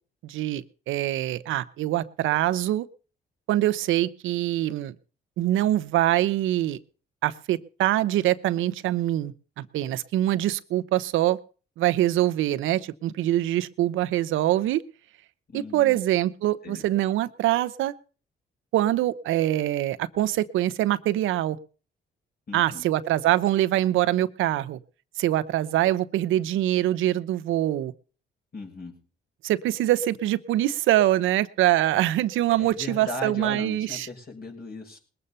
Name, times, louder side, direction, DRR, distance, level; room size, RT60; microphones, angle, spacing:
voice 1, 0.2-2.9 3.5-4.9 5.4-6.8 7.2-11.4 11.8-14.8 15.5-17.9 18.7-21.6 22.5-24.8 25.2-27.9 29.4-34.1, right 14 dB, 85° right, 14 dB, 0.9 m, -24 dB
voice 2, 15.5-16.0 16.6-16.8 22.5-22.8 28.5-28.9 32.6-35.0, left 2 dB, 50° left, 3 dB, 6.0 m, -37 dB
20.5 x 7.7 x 5.5 m, 0.38 s
cardioid pair, 90°, 20 cm